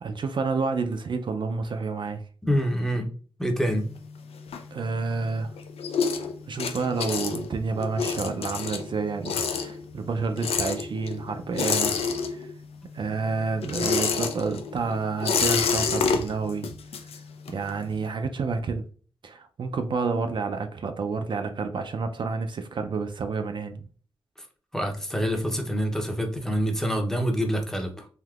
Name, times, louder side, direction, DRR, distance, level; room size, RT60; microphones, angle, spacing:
voice 1, 0.0-2.2 4.7-5.5 6.5-12.5 12.9-16.7 17.5-18.8 19.2-23.8, right 4 dB, 55° right, 0.4 m, -29 dB
voice 2, 2.4-3.1 3.4-3.9 24.7-28.1, equal, 5° left, 0.6 m, -26 dB
sound 1, 3.6-5.2 5.5-12.7 13.0-17.7, left 5 dB, 90° left, 0.4 m, -28 dB
3.5 x 2.7 x 2.3 m
wide cardioid pair, 120°, 10 cm